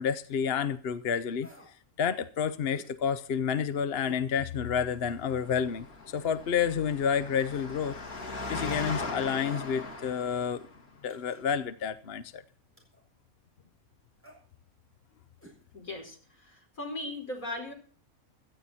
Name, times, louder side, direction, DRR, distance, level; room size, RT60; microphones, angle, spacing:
voice 1, 0.0-1.5 2.0-10.7 11.0-12.4, left 7 dB, 50° left, 0.9 m, -30 dB
sound 1, 1.4-1.8 2.7-3.0 4.0-4.3 4.8-4.9 6.1-6.5 7.4-7.7 9.4-9.9 11.1-11.5 12.8-13.0 14.2-14.4 15.4-15.6 15.9-16.0, equal, 10° left, 6.6 m, -53 dB
Engine, 5.1-10.8, left 3 dB, 85° left, 2.9 m, -39 dB
voice 2, 15.7-17.7, left 2 dB, 70° left, 5.1 m, -38 dB
17.0 x 13.5 x 4.2 m
omnidirectional pair, 1.5 m